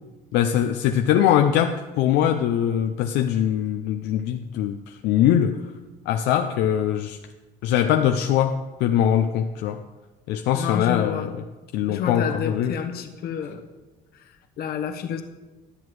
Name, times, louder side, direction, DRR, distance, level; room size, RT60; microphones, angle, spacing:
voice 1, 0.3-5.6 6.1-7.2 7.6-9.8 10.3-11.3 11.7-12.7, left 10 dB, 90° left, 6 dB, 0.5 m, -22 dB
voice 2, 10.5-11.4 11.9-13.6 14.1-15.2, left 8 dB, 65° left, 5 dB, 1.1 m, -30 dB
11.5 x 7.7 x 4.7 m, 1.2 s
cardioid pair, 110°, 17 cm